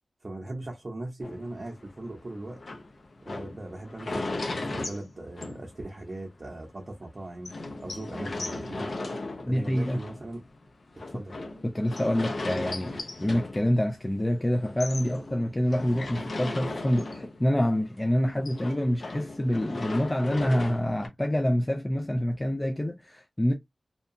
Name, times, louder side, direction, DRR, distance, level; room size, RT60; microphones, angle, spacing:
voice 1, 0.2-2.6 3.2-8.9 9.5-10.4 11.1-11.3, right 1 dB, 45° right, 0.7 m, -39 dB
sound 1, 1.2-6.1 6.5-6.6 6.9-7.0 7.4-14.2 14.5-17.6 17.9-21.1, left 2 dB, 70° left, 0.5 m, -37 dB
voice 2, 9.5-10.0 11.6-23.5, equal, 20° left, 0.3 m, -27 dB
2.7 x 2.2 x 2.5 m
wide cardioid pair, 70°, 0 cm